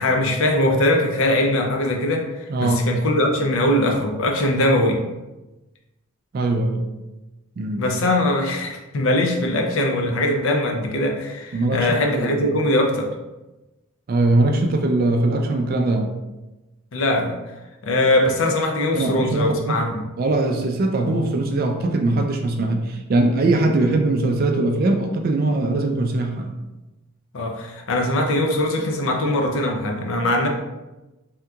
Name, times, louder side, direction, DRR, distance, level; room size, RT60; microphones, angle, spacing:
voice 1, 0.0-5.0 7.8-13.1 16.9-17.4 17.8-20.0 27.3-30.5, left 1 dB, 60° left, 2 dB, 0.5 m, -21 dB
voice 2, 2.5-2.8 6.3-6.9 7.6-7.9 11.5-12.5 14.1-16.1 19.0-19.8 20.2-26.6, right 2 dB, 40° right, 4 dB, 0.3 m, -21 dB
3.5 x 2.8 x 2.3 m, 1.1 s
head